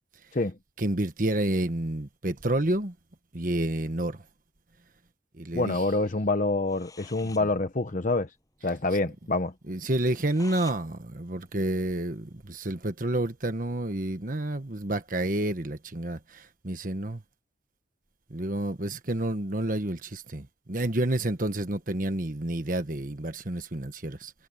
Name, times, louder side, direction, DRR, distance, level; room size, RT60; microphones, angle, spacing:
voice 1, 0.8-2.9 3.3-4.2 5.4-5.8 9.7-17.2 18.3-24.3, right 1 dB, 50° right, 1.4 m, -29 dB
voice 2, 5.5-8.3 8.6-9.5, left 2 dB, 45° left, 0.9 m, -26 dB
sound 1, 6.4-6.5 6.7-7.5 7.8-7.9 8.1-8.2 8.7-8.8 9.1-9.2 9.9-10.8 11.2-12.6, left 4 dB, 20° left, 7.8 m, -50 dB
head